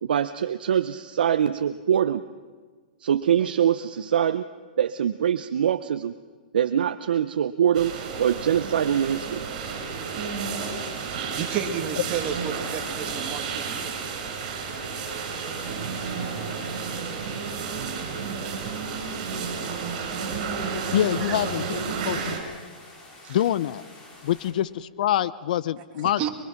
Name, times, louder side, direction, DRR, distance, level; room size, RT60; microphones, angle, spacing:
voice 1, 0.0-2.2 3.0-4.4 4.8-6.1 6.5-7.9 8.2-9.4, right 9 dB, 80° right, 11 dB, 0.7 m, -23 dB
sound 1, 7.7-22.4, right 5 dB, 50° right, 6.5 m, -31 dB
voice 2, 10.7-14.2 18.7-18.9 19.9-20.2 21.2-21.7 21.9-22.0 23.2-23.4 25.9-26.3, right 8 dB, 30° right, 3 dB, 2.6 m, -33 dB
sound 2, 14.6-24.5, left 2 dB, 20° left, 4.5 m, -48 dB
voice 3, 20.9-21.8 22.0-22.4 23.3-23.8 24.2-26.2, left 12 dB, 60° left, 16 dB, 0.7 m, -25 dB
23.5 x 23.0 x 6.0 m, 1.5 s
hypercardioid pair, 150°, 5 cm